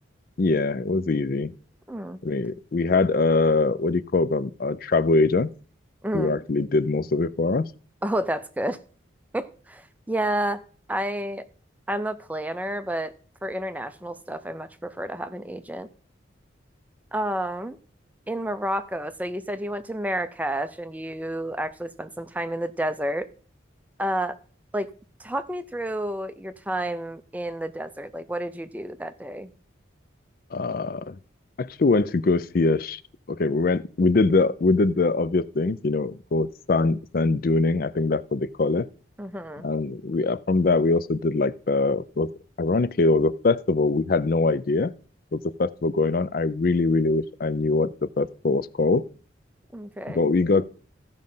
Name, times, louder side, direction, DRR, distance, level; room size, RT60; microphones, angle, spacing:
voice 1, 0.4-1.5 2.2-5.5 6.1-7.7 30.5-31.2 31.6-33.0 33.3-38.9 39.6-42.3 42.6-44.9 45.3-49.0 50.1-50.6, left 3 dB, 45° left, 0.4 m, -23 dB
voice 2, 1.9-2.2 6.0-6.3 8.0-8.8 9.3-10.6 10.9-11.5 11.9-13.1 13.4-15.9 17.1-17.8 18.3-23.3 24.0-24.4 24.7-24.9 25.2-29.5 39.2-39.7 49.7-50.2, right 1 dB, 10° right, 0.5 m, -30 dB
15.0 x 5.2 x 5.4 m
head